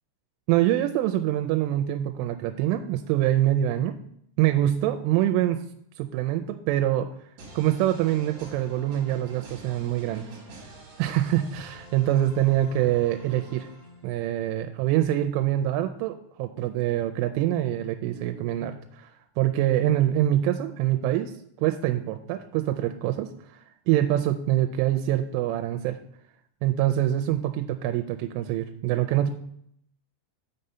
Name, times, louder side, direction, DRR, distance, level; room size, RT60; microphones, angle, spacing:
voice 1, 0.5-4.0 4.4-5.6 6.0-7.1 7.5-10.3 11.0-13.7 14.0-21.3 21.6-23.3 23.9-26.0 26.6-29.3, right 13 dB, 90° right, 7 dB, 3.1 m, -25 dB
sound 1, 7.4-14.3, right 2 dB, 50° right, 2.0 m, -46 dB
6.6 x 6.2 x 5.5 m, 0.69 s
omnidirectional pair, 5.6 m